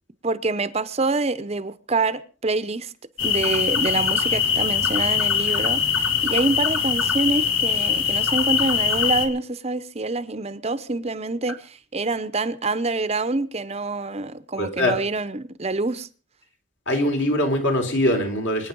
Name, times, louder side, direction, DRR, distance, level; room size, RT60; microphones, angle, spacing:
voice 1, 0.2-2.9 3.2-16.1, right 3 dB, 30° right, 0.7 m, -26 dB
sound 1, 3.2-9.3, left 7 dB, 85° left, 2.9 m, -22 dB
voice 2, 14.6-15.0 16.9-18.7, left 1 dB, 60° left, 3.7 m, -22 dB
25.0 x 9.5 x 5.4 m
head